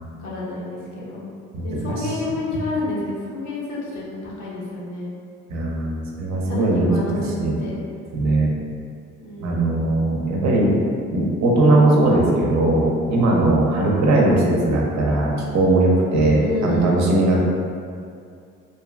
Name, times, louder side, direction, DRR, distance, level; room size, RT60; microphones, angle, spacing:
voice 1, 0.2-1.2 1.6-5.1 6.5-7.7 9.2-9.8 16.3-17.1, left 1 dB, 75° left, -5 dB, 0.7 m, -29 dB
voice 2, 1.5-2.1 5.5-6.9 7.4-7.5 8.1-8.5 9.4-10.7 11.1-17.4, right 2 dB, 65° right, -2 dB, 0.6 m, -19 dB
2.5 x 2.4 x 2.3 m, 2.3 s
cardioid pair, 90°, 30 cm